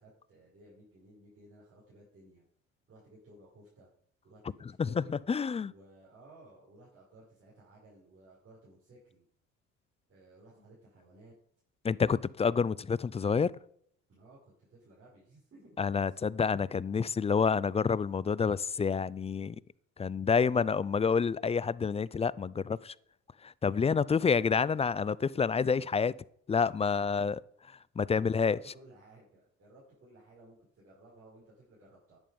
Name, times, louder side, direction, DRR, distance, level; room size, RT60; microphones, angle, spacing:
voice 1, 0.0-2.4 2.9-3.9 4.2-5.3 5.7-9.2 10.1-11.3 14.1-15.7 16.0-16.2 28.1-32.2, right 1 dB, 45° right, 5.7 m, -57 dB
voice 2, 4.8-5.7 11.8-13.5 15.8-19.6 20.0-22.9 23.4-26.1 26.5-27.4 28.0-28.6, left 5 dB, 20° left, 0.4 m, -28 dB
11.0 x 9.1 x 5.2 m
supercardioid pair, 85°, 32 cm